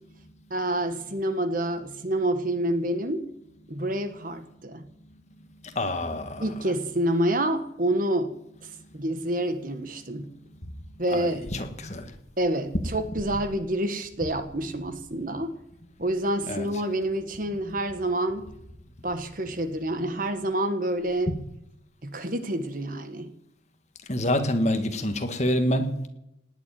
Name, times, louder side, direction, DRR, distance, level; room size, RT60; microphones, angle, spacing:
voice 1, 0.5-3.3 3.7-4.8 6.4-8.3 8.9-10.3 11.0-11.4 12.4-15.5 16.0-18.4 19.0-21.3 22.0-23.3, right 1 dB, 45° right, 1.4 m, -28 dB
voice 2, 5.8-6.4 11.1-12.0 16.5-16.7 24.1-25.9, left 1 dB, 35° left, 1.8 m, -26 dB
18.5 x 7.3 x 9.2 m
head